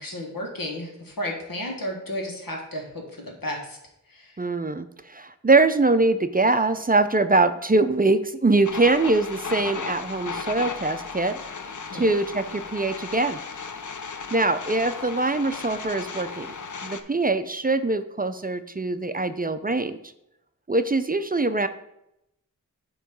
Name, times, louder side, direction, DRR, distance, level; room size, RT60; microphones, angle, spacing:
voice 1, 0.0-3.8 4.1-4.4 11.8-12.1, left 1 dB, 90° left, 0 dB, 1.6 m, -33 dB
voice 2, 4.4-11.4 11.9-13.4 14.3-16.5 16.8-20.0 20.7-21.7, right 2 dB, 25° right, 10 dB, 0.4 m, -23 dB
sound 1, 8.7-17.0, left 5 dB, 60° left, 0.6 m, -35 dB
8.2 x 3.1 x 6.0 m, 0.83 s
wide cardioid pair, 55°, 34 cm